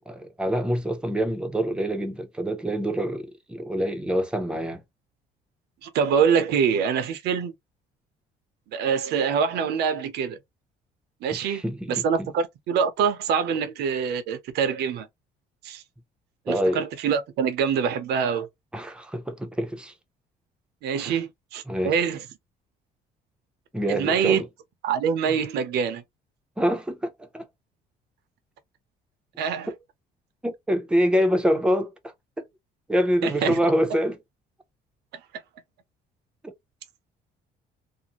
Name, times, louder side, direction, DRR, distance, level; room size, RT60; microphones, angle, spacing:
voice 1, 0.1-4.8 11.3-12.3 16.5-16.8 18.7-19.9 20.9-21.2 21.7-21.9 23.7-24.5 26.6-27.5 30.4-32.1 32.9-34.2 36.4-36.5, equal, 5° right, 0.6 m, -26 dB
voice 2, 5.8-7.5 8.7-10.4 11.2-15.1 15.6-15.8 16.5-18.5 20.8-22.3 23.9-24.4 24.8-26.0 29.4-29.7 33.2-33.6, right 7 dB, 75° right, 0.7 m, -25 dB
2.6 x 2.1 x 2.9 m
cardioid pair, 110°, 17 cm